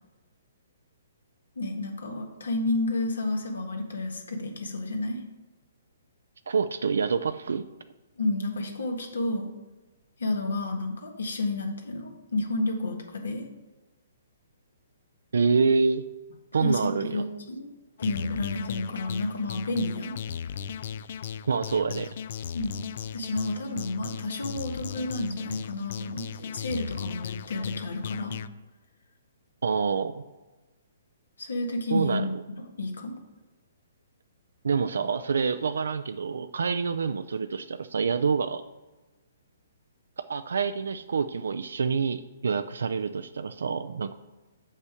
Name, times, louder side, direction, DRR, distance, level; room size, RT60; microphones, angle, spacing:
voice 1, 1.5-5.2 8.2-9.5 10.2-13.5 16.6-17.6 18.0-20.2 22.5-22.8 23.1-28.4 31.4-32.3 32.8-33.1, left 2 dB, 80° left, 3 dB, 1.5 m, -30 dB
voice 2, 6.5-7.6 15.3-16.0 16.5-17.2 21.5-22.1 29.6-30.2 31.9-32.4 34.6-38.6 40.2-44.1, right 5 dB, 75° right, 10 dB, 0.4 m, -27 dB
sound 1, 18.0-28.5, left 8 dB, 55° left, 0.3 m, -37 dB
6.9 x 5.4 x 4.9 m, 1.2 s
hypercardioid pair, 135°, 0 cm